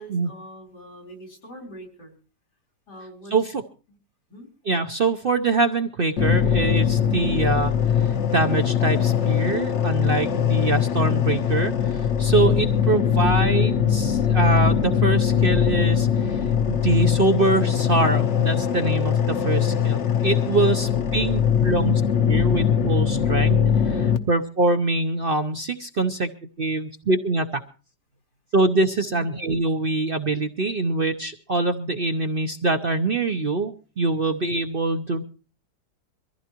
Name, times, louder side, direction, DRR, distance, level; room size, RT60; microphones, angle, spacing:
voice 1, 0.0-2.2 2.9-3.3 3.9-4.0 4.3-4.5 20.7-21.3 29.0-29.3, right 1 dB, 85° left, 2 dB, 4.6 m, -43 dB
voice 2, 3.3-3.6 4.7-16.4 16.7-22.0 22.3-23.6 23.8-26.3 26.6-27.6 28.5-35.2, right 3 dB, 45° right, 6 dB, 0.8 m, -24 dB
sound 1, 6.2-24.2, left 8 dB, 50° left, 1.1 m, -21 dB
23.5 x 15.0 x 2.9 m, 0.36 s
omnidirectional pair, 1.8 m